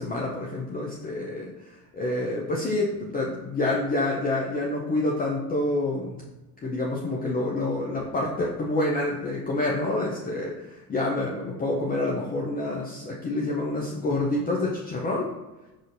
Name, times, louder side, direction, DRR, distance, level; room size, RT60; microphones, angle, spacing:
voice 1, 0.0-6.3 6.6-15.3, left 2 dB, 20° left, -3 dB, 0.5 m, -28 dB
6.3 x 2.6 x 2.6 m, 1.1 s
hypercardioid pair, 75°, 48 cm